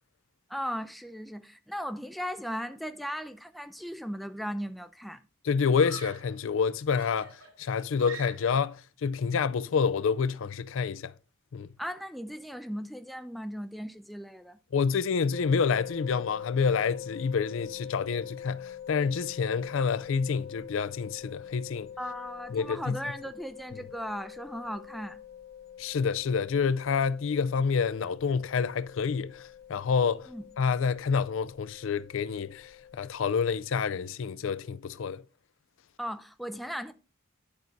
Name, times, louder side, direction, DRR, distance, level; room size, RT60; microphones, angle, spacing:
voice 1, 0.5-5.2 11.8-14.6 22.0-25.2 30.3-30.5 36.0-36.9, equal, ahead, 0.4 m, -37 dB
Screaming, 4.2-4.7 5.8-6.4 6.9-8.7, right 4 dB, 85° right, 2.4 m, -45 dB
voice 2, 5.4-7.3 7.6-11.1 11.5-11.7 14.7-21.9 22.5-23.0 25.8-29.4 29.7-30.3 30.6-35.2, left 5 dB, 70° left, 0.4 m, -28 dB
sound 1, 15.3-33.1, left 9 dB, 50° left, 0.9 m, -45 dB
10.5 x 4.5 x 3.9 m
head